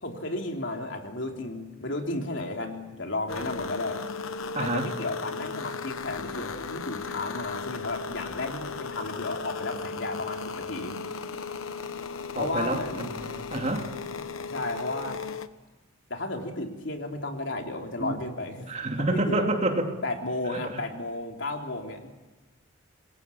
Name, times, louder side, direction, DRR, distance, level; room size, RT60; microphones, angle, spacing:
voice 1, 0.0-4.0 4.6-11.0 12.3-13.1 14.5-15.2 16.1-18.7 19.0-19.5 20.0-22.1, left 2 dB, 60° left, 3 dB, 3.4 m, -33 dB
sound 1, 3.3-15.5, left 5 dB, 85° left, 1.1 m, -36 dB
voice 2, 4.5-4.9 12.3-13.9 18.0-18.2 18.7-19.9, right 2 dB, 35° right, 3 dB, 2.8 m, -28 dB
28.0 x 21.5 x 7.1 m, 1.2 s
head